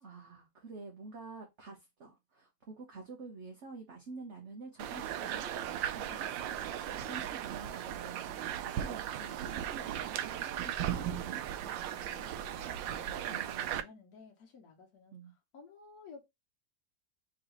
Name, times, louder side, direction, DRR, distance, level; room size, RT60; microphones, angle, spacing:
voice 1, 0.0-10.0 10.2-11.4 13.2-13.7 15.1-15.3, right 3 dB, 45° right, 1.2 m, -49 dB
sound 1, 4.8-13.8, right 10 dB, 85° right, 1.3 m, -37 dB
voice 2, 6.9-7.3 8.3-8.7 11.9-15.2 15.5-16.2, left 4 dB, 55° left, 1.7 m, -55 dB
3.9 x 3.1 x 4.0 m
omnidirectional pair, 2.0 m